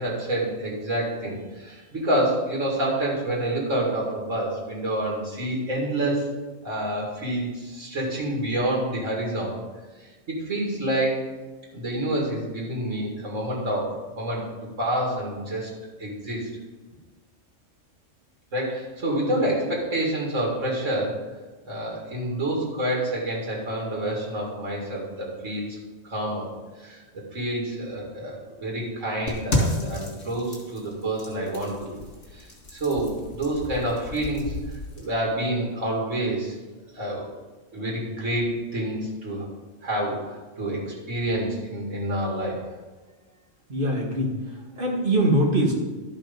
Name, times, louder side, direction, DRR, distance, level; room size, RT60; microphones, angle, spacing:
voice 1, 0.0-6.3 6.6-9.6 10.3-11.3 11.7-14.4 14.8-15.7 16.0-16.4 18.5-21.2 21.6-25.8 26.0-26.5 26.8-27.0 27.3-31.9 32.3-34.5 35.0-36.5 36.9-37.3 37.7-39.5 39.8-42.6, right 1 dB, 85° right, -3 dB, 2.7 m, -28 dB
sound 1, 29.3-35.1, left 2 dB, 70° left, 2.6 m, -32 dB
voice 2, 43.7-45.8, right 1 dB, 45° right, -1 dB, 1.8 m, -23 dB
11.5 x 5.5 x 5.3 m, 1.3 s
omnidirectional pair, 1.3 m